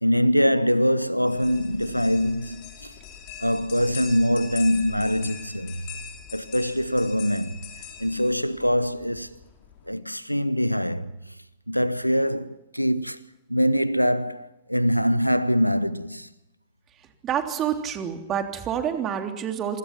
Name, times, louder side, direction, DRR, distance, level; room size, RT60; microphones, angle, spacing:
voice 1, 0.0-2.9 3.4-5.8 6.3-7.7 8.0-9.4 9.9-11.3 11.7-16.3, equal, 90° left, 0.8 m, -24 dB
sound 1, 1.3-9.9, left 8 dB, 45° left, 5.8 m, -42 dB
voice 2, 17.2-19.8, right 9 dB, 30° right, 3.4 m, -28 dB
27.0 x 24.5 x 6.0 m
figure-of-eight pair, 90°, 0 cm